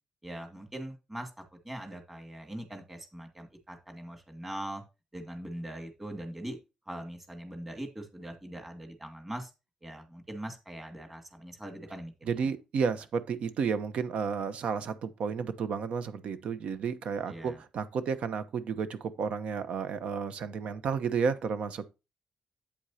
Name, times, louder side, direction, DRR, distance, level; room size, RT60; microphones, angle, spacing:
voice 1, 0.2-1.3 1.6-4.8 5.1-6.6 6.9-9.5 9.8-12.5 17.3-17.6, right 1 dB, 10° right, 2.3 m, -41 dB
voice 2, 12.2-21.9, right 6 dB, 65° right, 1.0 m, -32 dB
8.7 x 8.1 x 2.9 m
wide cardioid pair, 165°, 2 cm